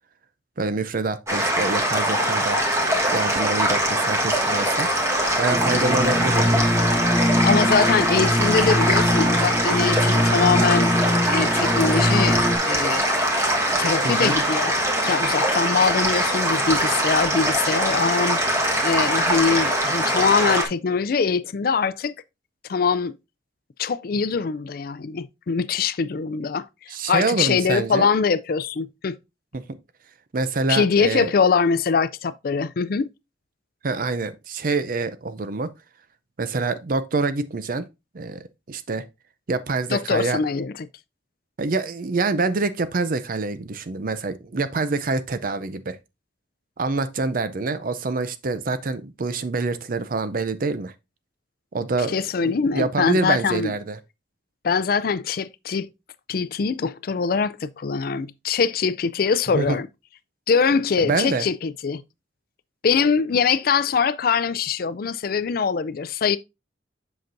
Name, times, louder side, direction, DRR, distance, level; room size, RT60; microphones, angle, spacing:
voice 1, 0.6-2.6 3.1-4.9 5.4-6.6 14.0-14.4 26.9-28.1 29.5-29.6 30.3-31.3 33.8-35.7 36.4-37.9 38.1-39.0 39.5-40.4 41.6-46.0 46.8-50.9 51.7-52.1 52.4-54.0 59.5-59.8 61.0-61.5, right 3 dB, 50° right, 0.5 m, -26 dB
sound 1, 1.3-20.6, right 1 dB, 15° right, 1.4 m, -22 dB
sound 2, 5.5-12.6, left 1 dB, 5° left, 2.2 m, -23 dB
voice 2, 7.4-10.9 11.3-13.1 13.8-14.7 15.0-22.1 22.7-23.2 23.8-29.2 30.7-33.1 39.9-40.7 52.1-53.7 54.6-55.9 56.3-59.9 60.5-62.0 62.8-66.4, left 5 dB, 50° left, 0.4 m, -23 dB
7.7 x 5.8 x 2.6 m
head